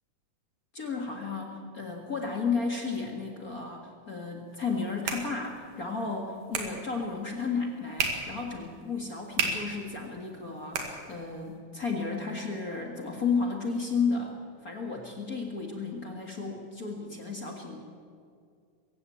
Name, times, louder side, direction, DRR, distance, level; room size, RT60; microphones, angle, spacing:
voice 1, 0.7-17.8, left 4 dB, 35° left, 1 dB, 1.9 m, -33 dB
sound 1, 4.5-11.6, right 4 dB, 80° right, 3.8 m, -37 dB
23.5 x 15.0 x 8.6 m, 2.2 s
omnidirectional pair, 3.6 m